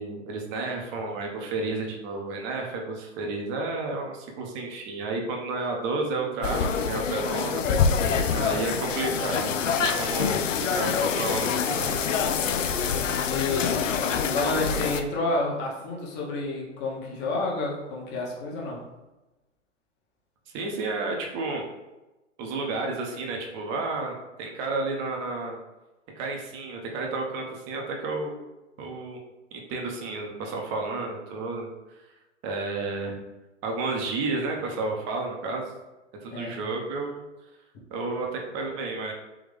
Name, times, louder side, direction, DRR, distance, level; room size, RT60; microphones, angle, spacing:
voice 1, 0.0-7.6 8.3-10.4 10.7-11.9 20.5-21.7 22.4-25.6 26.2-28.3 28.8-29.2 29.5-31.7 32.4-33.2 33.6-35.7 36.2-37.2 37.9-39.1, right 3 dB, 30° right, 1 dB, 0.8 m, -31 dB
sound 1, 6.4-15.0, left 6 dB, 85° left, 0.5 m, -26 dB
voice 2, 8.0-8.5 13.2-13.9 14.2-18.8 36.3-36.6, left 2 dB, 30° left, -3 dB, 1.1 m, -30 dB
3.6 x 3.1 x 3.4 m, 1.1 s
hypercardioid pair, 120°, 37 cm